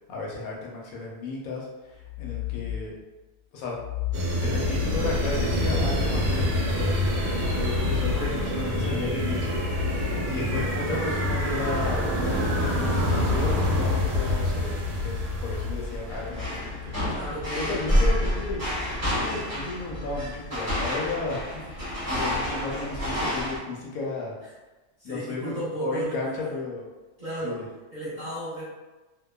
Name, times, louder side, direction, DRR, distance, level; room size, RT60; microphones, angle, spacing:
voice 1, 0.1-2.9 3.5-3.8 4.4-9.6 10.3-17.1 17.6-18.6 19.0-24.3 25.0-25.5 25.8-26.8 27.4-27.6, left 3 dB, 75° left, -3 dB, 1.0 m, -34 dB
sound 1, 1.9-2.9 3.7-9.7, left 8 dB, 70° right, 1.0 m, -38 dB
sound 2, 4.1-16.4, left 1 dB, 90° right, 1.2 m, -26 dB
sound 3, 16.1-23.6, equal, 15° right, 0.8 m, -28 dB
voice 2, 17.1-17.7 25.0-26.6 27.2-28.6, right 1 dB, 40° right, -12 dB, 0.7 m, -34 dB
2.8 x 2.0 x 2.2 m, 1.2 s
omnidirectional pair, 1.6 m